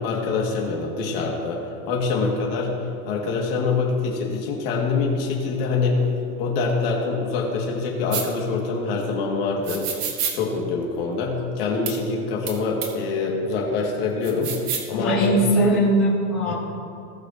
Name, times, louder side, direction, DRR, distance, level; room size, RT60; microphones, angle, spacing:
voice 1, 0.0-2.7 3.0-6.0 6.4-9.9 10.3-15.4 16.4-16.5, left 4 dB, 40° left, -2 dB, 2.2 m, -25 dB
sound 1, 8.1-8.3 9.7-10.4 11.9-12.0 12.5-12.6 12.8-12.9 14.2-14.9, right 7 dB, 80° right, 2.1 m, -28 dB
voice 2, 15.0-16.5, right 1 dB, 10° left, -11 dB, 0.3 m, -20 dB
18.5 x 6.5 x 2.9 m, 2.5 s
supercardioid pair, 170°, 46 cm